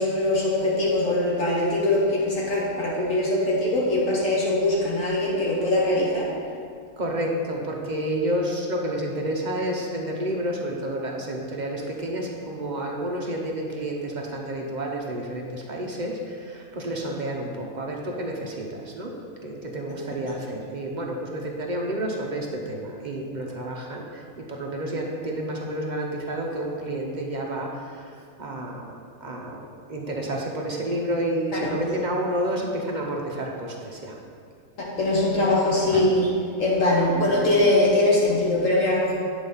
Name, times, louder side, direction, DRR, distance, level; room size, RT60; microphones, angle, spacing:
voice 1, 0.0-6.3 31.5-31.6 34.8-36.3 36.6-39.1, left 1 dB, 60° left, -4 dB, 1.4 m, -22 dB
voice 2, 7.0-19.1 19.4-28.9 29.2-29.6 29.9-34.2 35.9-36.0, right 1 dB, 40° right, -1 dB, 0.8 m, -30 dB
8.9 x 4.0 x 5.4 m, 2.2 s
omnidirectional pair, 1.6 m